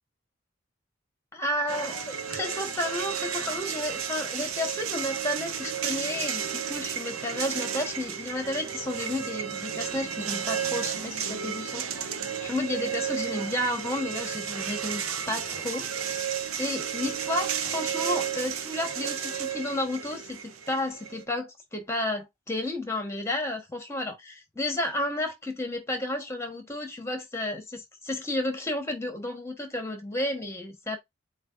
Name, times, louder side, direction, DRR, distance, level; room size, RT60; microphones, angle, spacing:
voice 1, 1.3-16.1 16.6-31.0, left 1 dB, 15° left, 1.3 m, -32 dB
sound 1, 1.7-21.2, right 8 dB, 85° right, 0.8 m, -33 dB
7.8 x 2.6 x 2.5 m
head